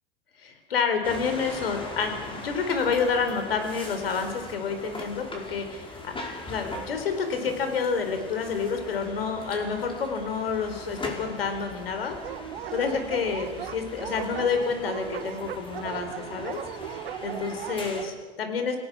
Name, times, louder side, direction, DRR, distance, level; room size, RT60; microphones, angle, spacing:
voice 1, 0.4-6.1 6.4-12.2 12.7-18.8, left 5 dB, 80° left, 6 dB, 4.1 m, -29 dB
sound 1, 1.0-18.1, left 1 dB, 20° left, 5.3 m, -41 dB
Dog, 12.2-18.1, right 11 dB, 80° right, 0.9 m, -37 dB
28.0 x 18.5 x 6.2 m, 1.5 s
hypercardioid pair, 90°, 29 cm